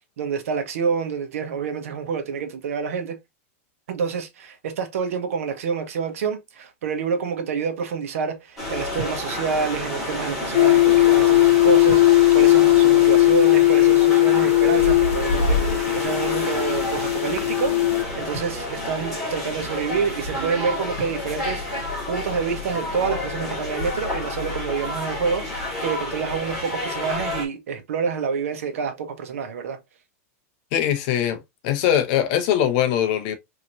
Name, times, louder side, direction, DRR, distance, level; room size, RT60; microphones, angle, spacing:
voice 1, 0.2-3.2 3.9-29.8, right 6 dB, 80° right, 1.3 m, -28 dB
sound 1, 8.6-27.5, left 1 dB, ahead, 2.0 m, -29 dB
sound 2, 10.5-18.0, left 16 dB, 75° left, 0.5 m, -17 dB
voice 2, 30.7-31.4 31.6-33.3, left 10 dB, 35° left, 0.7 m, -21 dB
4.8 x 3.0 x 2.7 m
supercardioid pair, 180°, 8 cm